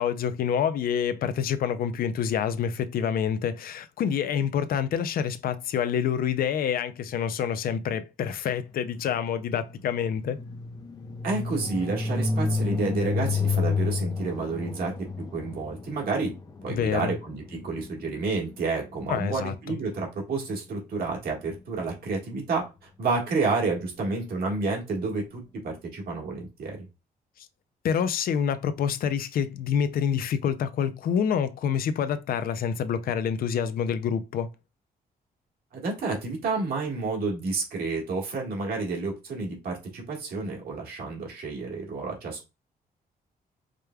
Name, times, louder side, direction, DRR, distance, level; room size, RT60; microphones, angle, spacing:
voice 1, 0.0-10.4 16.7-17.2 19.1-19.5 27.4-27.5 27.8-34.5, left 8 dB, 70° left, 0.5 m, -27 dB
sound 1, 8.7-18.7, left 4 dB, 25° left, 0.5 m, -31 dB
voice 2, 11.2-14.9 15.3-16.3 16.6-26.8 35.7-42.5, right 3 dB, 75° right, 1.7 m, -30 dB
5.0 x 3.4 x 2.2 m
cardioid pair, 110°, 16 cm